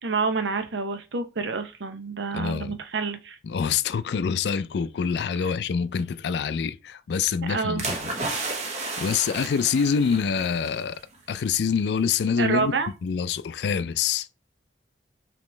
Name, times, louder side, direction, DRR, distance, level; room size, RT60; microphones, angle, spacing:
voice 1, 0.0-3.4 7.5-7.8 12.4-12.9, right 4 dB, 90° right, 0.7 m, -28 dB
voice 2, 2.3-2.8 3.4-8.0 9.0-11.0 11.3-12.7 13.0-14.3, left 6 dB, 70° left, 0.3 m, -26 dB
sound 1, 7.8-10.8 11.1-11.4, right 3 dB, 40° right, 0.9 m, -32 dB
5.2 x 3.0 x 3.2 m
head